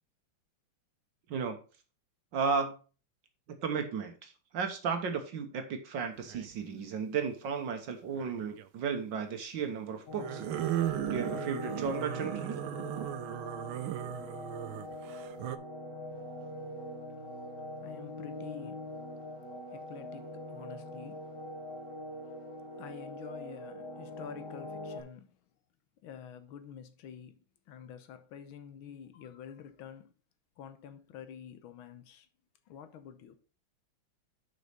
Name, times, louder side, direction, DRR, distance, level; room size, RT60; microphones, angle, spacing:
voice 1, 2.3-2.8 3.6-10.4 10.8-12.6, right 6 dB, 65° right, 1.6 m, -34 dB
sound 1, 6.2-6.6 8.1-8.7 10.1-15.6, right 13 dB, 85° right, 1.4 m, -36 dB
sound 2, 10.1-25.0, left 1 dB, 55° left, 2.0 m, -43 dB
voice 2, 16.1-16.5 17.3-17.4 17.8-19.0 19.7-21.4 22.3-25.4 26.0-30.1 30.6-32.3 32.7-33.4, left 8 dB, 80° left, 1.7 m, -49 dB
6.4 x 5.3 x 5.7 m
omnidirectional pair, 2.2 m